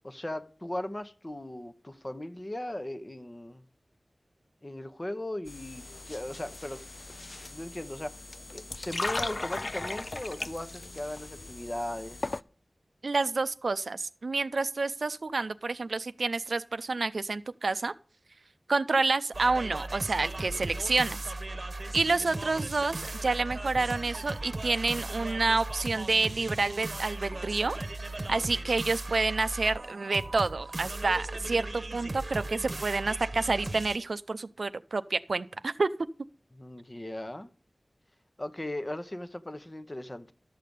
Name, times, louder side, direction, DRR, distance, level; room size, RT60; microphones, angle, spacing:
voice 1, 0.0-3.6 4.6-6.8 7.4-8.2 8.5-12.4 36.5-37.5 38.4-40.3, left 1 dB, 30° left, 0.9 m, -38 dB
sound 1, 5.5-12.4, left 2 dB, 50° left, 0.4 m, -38 dB
voice 2, 13.0-17.9 18.7-21.2 21.9-27.8 28.3-35.9, right 3 dB, 85° right, 0.5 m, -29 dB
sound 2, 19.3-34.0, right 2 dB, 55° right, 0.9 m, -37 dB
12.0 x 6.6 x 5.3 m
wide cardioid pair, 60°, 0 cm